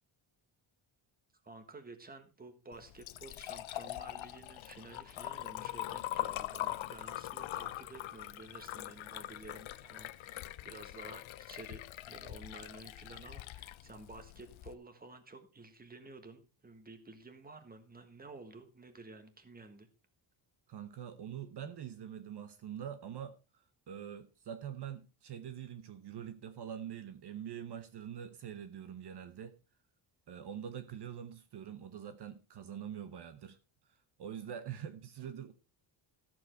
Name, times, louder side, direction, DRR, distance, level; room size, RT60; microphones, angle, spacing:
voice 1, 1.4-19.9, right 3 dB, 20° right, 1.6 m, -52 dB
Liquid, 2.7-14.7, left 14 dB, 75° left, 0.7 m, -42 dB
voice 2, 20.7-29.6 30.3-33.6 34.2-35.5, right 9 dB, 55° right, 1.0 m, -44 dB
13.5 x 7.6 x 4.5 m
wide cardioid pair, 170°, 47 cm